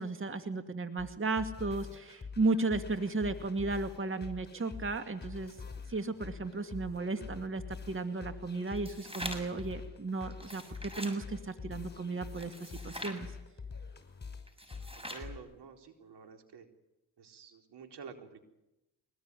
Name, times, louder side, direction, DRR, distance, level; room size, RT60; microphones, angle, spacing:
voice 1, 0.0-5.6 5.9-13.4, right 3 dB, 30° right, 8 dB, 2.3 m, -34 dB
sound 1, 1.0-15.4, left 5 dB, 25° left, 6.0 m, -46 dB
sound 2, 8.7-9.6 10.3-11.2 12.4-13.2 14.5-15.3, equal, 15° right, 6.8 m, -43 dB
voice 2, 14.9-16.7 17.2-18.4, right 5 dB, 70° right, 5 dB, 4.1 m, -50 dB
23.5 x 20.0 x 9.9 m, 0.94 s
supercardioid pair, 65°, 42 cm